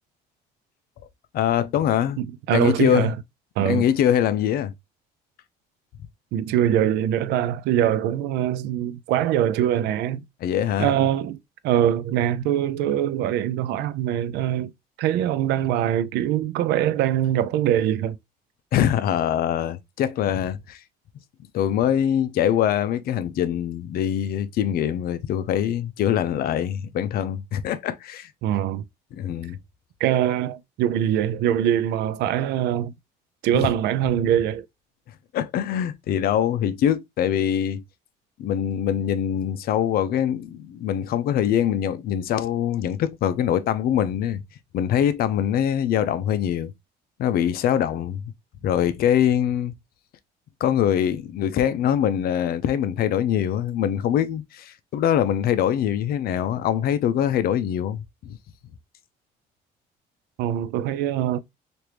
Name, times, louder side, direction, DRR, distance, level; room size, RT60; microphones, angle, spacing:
voice 1, 1.3-2.2 2.5-3.1 3.6-4.7 10.4-10.9 18.7-20.8 21.5-28.3 29.1-29.6 33.5-33.7 35.3-37.8 38.4-44.4 44.7-46.7 47.2-48.2 48.6-49.7 50.6-58.4, left 10 dB, 65° left, 0.5 m, -23 dB
voice 2, 2.2-3.1 3.6-3.9 6.3-10.2 10.8-11.4 11.6-14.7 15.0-18.2 28.4-28.8 30.0-32.9 33.4-34.6 60.4-61.4, right 11 dB, 80° right, 0.4 m, -23 dB
3.2 x 2.5 x 2.9 m
cardioid pair, 110°, 17 cm